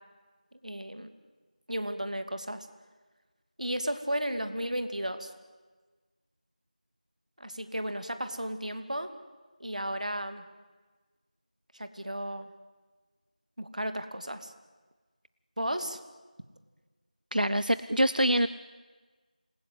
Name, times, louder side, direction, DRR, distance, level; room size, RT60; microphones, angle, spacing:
voice 1, 0.6-1.1 1.7-2.7 3.6-5.3 7.4-9.1 9.6-10.5 11.7-12.5 13.6-14.5 15.6-16.0, equal, 60° right, 8 dB, 2.5 m, -34 dB
voice 2, 17.3-18.5, equal, 90° right, 14 dB, 0.9 m, -25 dB
27.0 x 20.0 x 9.6 m, 1.3 s
figure-of-eight pair, 175°, 4 cm